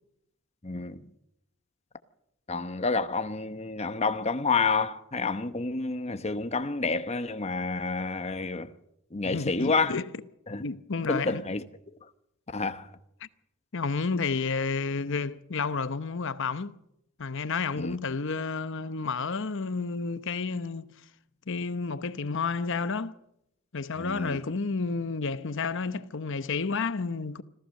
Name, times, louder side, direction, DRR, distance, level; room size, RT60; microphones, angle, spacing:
voice 1, 0.6-1.1 2.5-8.7 9.1-10.0 10.5-10.6 11.1-11.6 12.5-12.9 17.7-18.0 24.0-24.4, left 4 dB, 30° left, 1.0 m, -29 dB
voice 2, 9.2-10.1 10.6-11.4 13.7-16.7 17.2-20.9 21.5-23.1 23.7-27.4, left 4 dB, 60° left, 0.9 m, -31 dB
26.0 x 15.5 x 6.6 m
head